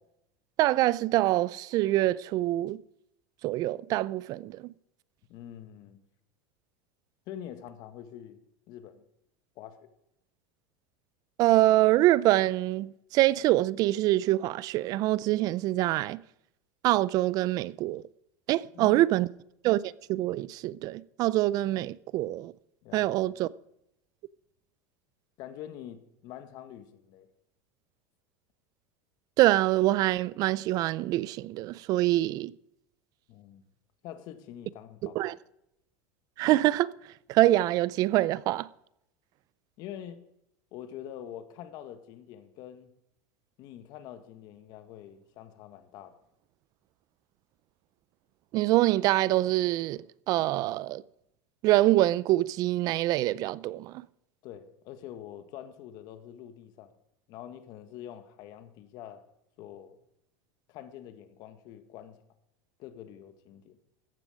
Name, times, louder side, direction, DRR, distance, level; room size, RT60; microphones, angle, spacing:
voice 1, 0.6-2.8 3.4-4.6 11.4-16.2 16.8-18.0 18.5-19.3 19.6-22.5 22.9-23.5 29.4-32.5 35.2-35.3 36.4-36.9 37.3-38.7 48.5-50.0 50.3-51.0 51.6-54.0, right 16 dB, 50° right, 0.5 m, -25 dB
voice 2, 5.3-6.0 7.3-8.4 8.7-9.0 9.5-9.8 18.7-19.0 22.8-23.4 25.4-27.3 33.3-33.6 34.0-35.4 39.8-40.2 40.7-42.9 43.6-46.1 50.4-50.5 54.4-56.9 57.3-59.2 59.6-60.0 60.7-62.2 62.8-63.8, left 10 dB, 55° left, 1.6 m, -45 dB
14.5 x 10.0 x 5.0 m
supercardioid pair, 120°, 8 cm